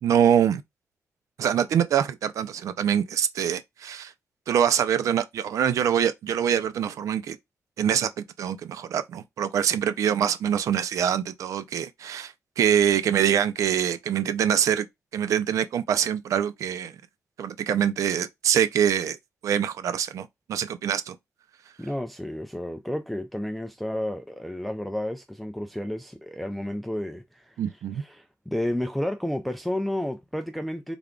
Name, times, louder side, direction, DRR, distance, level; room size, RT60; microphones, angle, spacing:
voice 1, 0.0-0.6 1.4-4.1 4.5-7.4 7.8-14.9 15.1-17.0 17.4-19.2 19.4-21.2 27.6-28.0, right 9 dB, 75° right, 0.4 m, -24 dB
voice 2, 21.8-27.6 28.0-31.0, left 1 dB, ahead, 0.3 m, -31 dB
3.4 x 2.3 x 3.6 m
wide cardioid pair, 150°, 6 cm